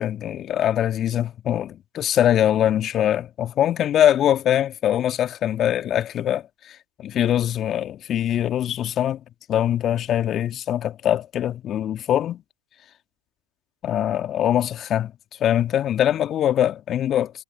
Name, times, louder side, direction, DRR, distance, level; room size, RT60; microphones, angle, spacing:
voice 1, 0.0-9.2 9.5-12.4 13.8-15.1 15.4-17.3, left 11 dB, 35° left, 2.3 m, -22 dB
hypercardioid pair, 95°, 0 cm